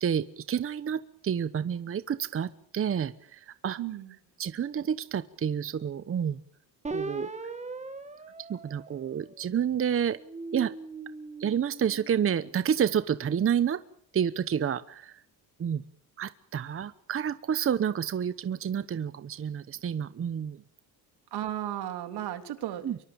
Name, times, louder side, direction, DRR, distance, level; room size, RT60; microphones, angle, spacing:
voice 1, 0.0-3.8 4.4-6.4 6.9-7.3 8.4-10.2 10.5-10.7 11.4-13.8 14.1-15.2 15.6-15.8 16.2-20.6 22.8-23.0, right 8 dB, 35° right, 14 dB, 1.0 m, -29 dB
voice 2, 3.8-4.1 21.3-23.0, right 12 dB, 70° right, 8 dB, 3.3 m, -34 dB
sound 1, 6.8-9.5 10.1-12.6, right 3 dB, 15° right, 2.5 m, -40 dB
24.5 x 23.5 x 7.1 m, 0.64 s
cardioid pair, 115°, 40 cm